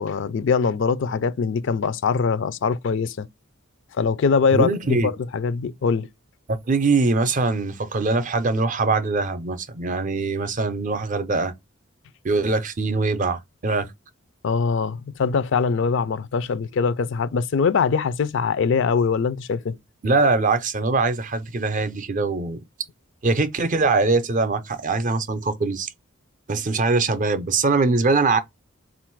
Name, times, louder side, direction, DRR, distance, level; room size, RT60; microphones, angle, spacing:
voice 1, 0.0-3.3 4.0-6.1 14.4-19.8, left 5 dB, 65° left, 0.4 m, -22 dB
voice 2, 4.5-5.1 6.5-11.5 12.2-13.9 20.0-22.6 23.2-25.9 26.5-28.4, right 3 dB, 40° right, 0.5 m, -22 dB
3.7 x 2.4 x 4.5 m
head